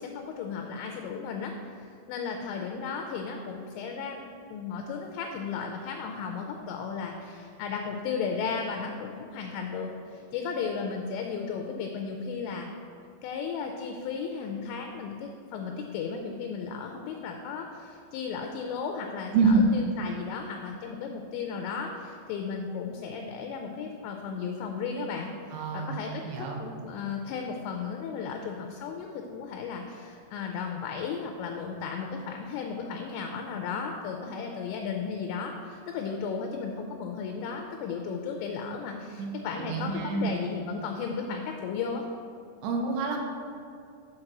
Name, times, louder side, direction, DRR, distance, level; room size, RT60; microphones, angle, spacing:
voice 1, 0.0-1.5 1.8-4.2 4.5-12.7 13.2-42.0, left 5 dB, 80° left, 3 dB, 2.7 m, -35 dB
voice 2, 19.3-19.7 25.5-25.9 26.2-26.6 39.2-39.3 39.6-40.3 42.6-43.2, right 4 dB, 80° right, 1 dB, 2.4 m, -26 dB
7.7 x 4.6 x 6.0 m, 2.4 s
omnidirectional pair, 5.5 m